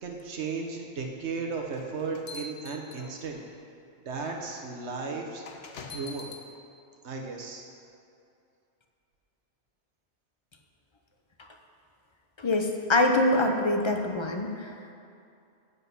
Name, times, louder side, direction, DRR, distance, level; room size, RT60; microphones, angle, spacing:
voice 1, 0.0-3.4 4.0-5.4 5.9-6.3 7.0-7.7, right 4 dB, 70° right, 1 dB, 1.2 m, -35 dB
sound 1, 1.7-3.5 4.3-4.4 5.5-6.5, left 3 dB, 65° left, 1.0 m, -43 dB
voice 2, 12.4-14.7, left 2 dB, 30° left, 4 dB, 0.6 m, -24 dB
8.1 x 8.0 x 5.4 m, 2.5 s
omnidirectional pair, 1.2 m